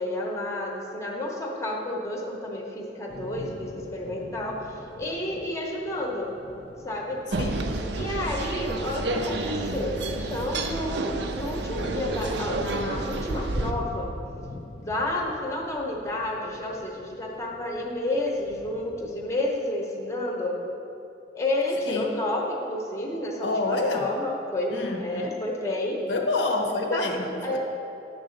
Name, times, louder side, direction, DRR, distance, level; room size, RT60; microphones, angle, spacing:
voice 1, 0.0-6.3 6.8-7.2 7.9-14.1 14.8-20.5 21.3-26.0 26.9-27.0 27.4-27.6, left 1 dB, 15° left, -1 dB, 0.7 m, -30 dB
Thunder / Rain, 3.1-19.2, left 2 dB, 30° left, 0.3 m, -45 dB
sound 1, 7.3-13.7, right 2 dB, 60° right, 0.5 m, -30 dB
voice 2, 23.4-24.1 24.7-25.3 26.1-27.6, left 2 dB, 65° left, 3 dB, 0.7 m, -27 dB
9.5 x 3.9 x 6.4 m, 2.8 s
head